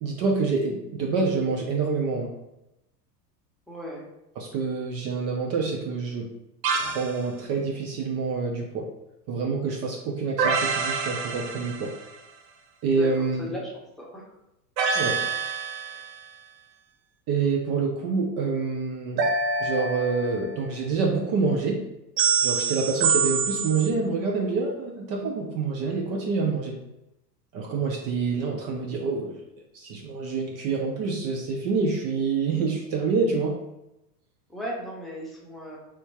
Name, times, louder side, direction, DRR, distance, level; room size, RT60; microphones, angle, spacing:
voice 1, 0.0-2.3 4.4-6.3 6.8-8.9 9.3-11.9 12.8-13.5 14.9-15.6 17.3-19.3 19.6-21.8 22.4-26.8 27.5-29.4 29.7-33.6, right 4 dB, 35° right, 0 dB, 0.4 m, -27 dB
voice 2, 3.7-4.0 12.9-13.1 13.5-13.7 14.0-14.2 34.5-35.8, equal, ahead, -4 dB, 0.9 m, -36 dB
sound 1, 6.6-7.2 10.4-12.1 14.8-16.2 19.2-20.7 22.2-23.9, right 5 dB, 80° right, 0.7 m, -26 dB
3.4 x 2.9 x 2.8 m, 0.90 s
hypercardioid pair, 95°, 50 cm